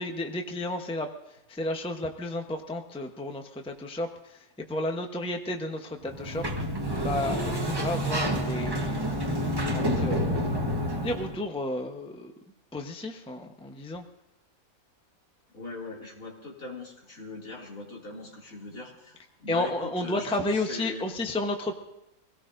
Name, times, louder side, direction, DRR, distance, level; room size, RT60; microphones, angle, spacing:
voice 1, 0.0-6.7 7.0-12.3 12.7-14.0 19.5-21.8, left 2 dB, 5° left, 4 dB, 0.8 m, -33 dB
Sliding door, 6.0-11.4, equal, 20° right, 1.0 m, -28 dB
voice 2, 15.5-20.3 20.5-21.0, left 2 dB, 65° left, -2 dB, 3.1 m, -41 dB
24.5 x 17.5 x 2.6 m, 0.90 s
omnidirectional pair, 1.5 m